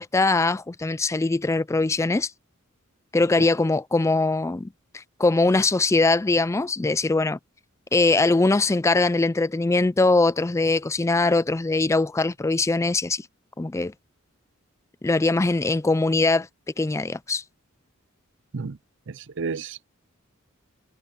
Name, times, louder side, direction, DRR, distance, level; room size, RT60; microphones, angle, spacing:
voice 1, 0.0-2.3 3.1-7.4 7.9-13.2 13.6-13.9 15.0-16.5 16.8-17.4, left 3 dB, 15° left, 0.4 m, -22 dB
voice 2, 19.1-19.8, right 4 dB, 60° right, 0.6 m, -32 dB
head